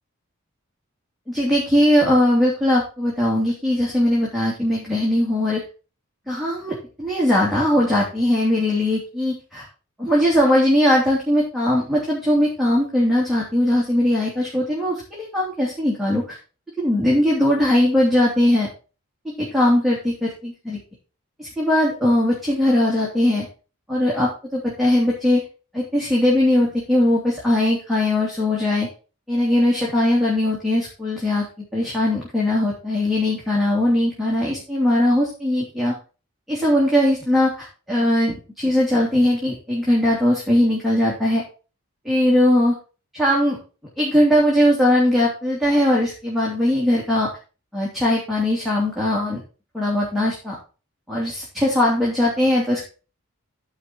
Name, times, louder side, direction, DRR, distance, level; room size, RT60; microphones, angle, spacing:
voice 1, 1.3-5.6 6.3-9.7 10.0-16.4 16.8-18.7 19.4-20.8 21.4-23.5 23.9-25.4 25.7-28.9 29.3-35.9 36.5-41.4 42.0-42.8 43.1-43.6 44.0-47.3 47.7-49.4 49.7-50.5 51.1-52.8, left 1 dB, ahead, -6 dB, 2.8 m, -20 dB
13.5 x 5.2 x 4.4 m, 0.34 s
head